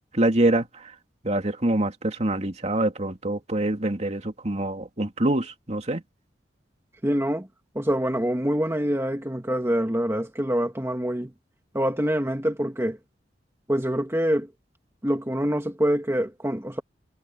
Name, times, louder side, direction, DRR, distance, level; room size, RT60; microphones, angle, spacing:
voice 1, 0.1-0.9 1.2-6.0, right 1 dB, 40° right, 2.7 m, -25 dB
voice 2, 7.0-7.5 7.8-11.3 11.7-13.0 13.7-14.5 15.0-16.8, equal, 15° right, 1.9 m, -25 dB
head